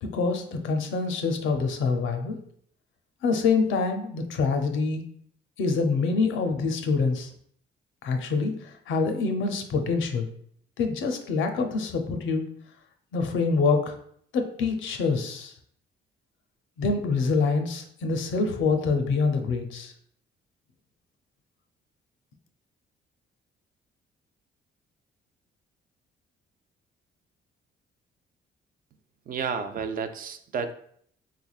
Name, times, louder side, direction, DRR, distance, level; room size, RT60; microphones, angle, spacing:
voice 1, 0.0-2.4 3.2-5.0 5.6-7.3 8.0-10.3 10.8-12.5 13.1-13.9 14.3-15.5 16.8-19.9, left 4 dB, 75° left, 5 dB, 0.6 m, -26 dB
voice 2, 29.3-30.7, right 6 dB, 45° right, 9 dB, 0.4 m, -31 dB
3.5 x 3.3 x 2.3 m, 0.64 s
cardioid pair, 90°, 20 cm